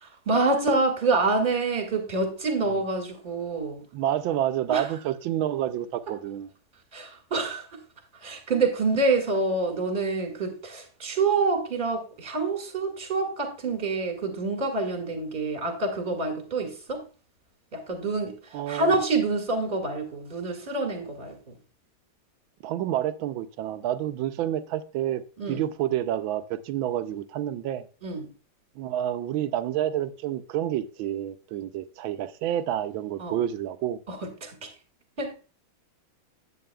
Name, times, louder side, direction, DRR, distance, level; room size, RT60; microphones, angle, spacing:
voice 1, 0.0-3.8 4.7-4.9 6.9-7.7 8.2-17.0 17.7-18.3 18.7-21.6 25.4-25.6 28.0-28.3 33.2-33.4 34.1-34.7 35.2-35.3, right 3 dB, 25° right, 1.9 m, -27 dB
voice 2, 3.9-6.5 18.5-18.9 22.6-25.2 25.5-27.9 28.8-34.0, right 11 dB, 75° right, 1.3 m, -29 dB
10.5 x 8.6 x 2.3 m
omnidirectional pair, 2.4 m